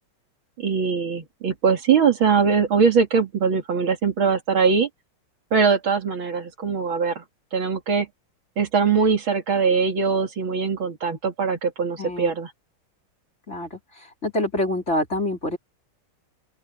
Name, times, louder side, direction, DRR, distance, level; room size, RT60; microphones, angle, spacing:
voice 1, 0.6-4.9 5.5-7.2 7.5-8.1 8.6-12.5, right 5 dB, 70° right, 3.1 m, -21 dB
voice 2, 12.0-12.3 13.5-15.6, left 1 dB, 30° left, 4.4 m, -26 dB
open air
omnidirectional pair, 2.3 m